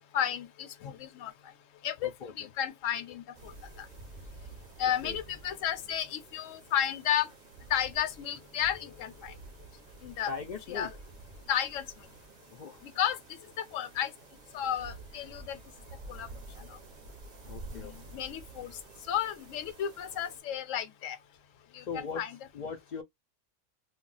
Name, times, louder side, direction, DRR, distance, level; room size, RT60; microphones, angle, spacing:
voice 1, 0.1-1.3 1.8-3.9 4.8-7.3 7.7-9.3 10.0-10.3 10.7-10.9 11.5-11.9 12.8-14.1 14.5-15.6 16.1-16.3 16.6-16.8 17.7-18.7 19.1-21.2 21.7-22.4, left 10 dB, 80° left, 1.0 m, -33 dB
voice 2, 2.0-2.5 5.0-5.2 10.3-10.9 12.5-12.8 17.4-18.0 21.9-22.2 22.5-23.0, left 5 dB, 65° left, 0.4 m, -39 dB
sound 1, 3.3-20.4, right 2 dB, 50° right, 0.6 m, -50 dB
2.3 x 2.1 x 3.8 m
omnidirectional pair, 1.3 m